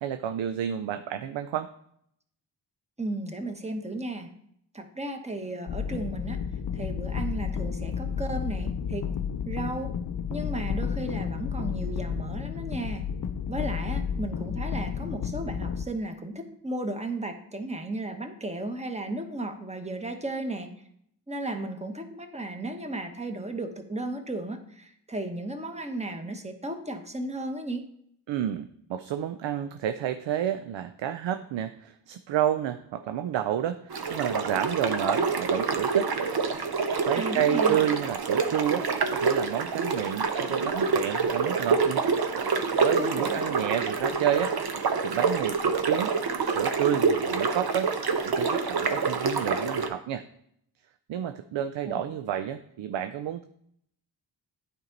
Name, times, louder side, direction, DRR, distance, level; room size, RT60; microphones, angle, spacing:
voice 1, 0.0-1.7 28.3-36.1 36.8-38.9 39.1-42.0 42.8-44.6 45.0-46.1 46.5-47.9 48.2-50.2 51.1-53.4, right 10 dB, 75° right, 10 dB, 0.5 m, -30 dB
voice 2, 3.0-4.3 4.7-6.4 6.7-9.1 9.4-9.9 10.3-13.1 13.5-20.7 21.3-27.8 37.1-37.8 43.0-43.5 51.9-52.0, right 2 dB, 15° right, 6 dB, 1.1 m, -34 dB
sound 1, 5.7-15.9, left 7 dB, 45° left, 0.5 m, -31 dB
sound 2, 33.9-49.9, right 5 dB, 55° right, 0.9 m, -27 dB
9.3 x 4.5 x 3.9 m, 0.71 s
cardioid pair, 45°, 45 cm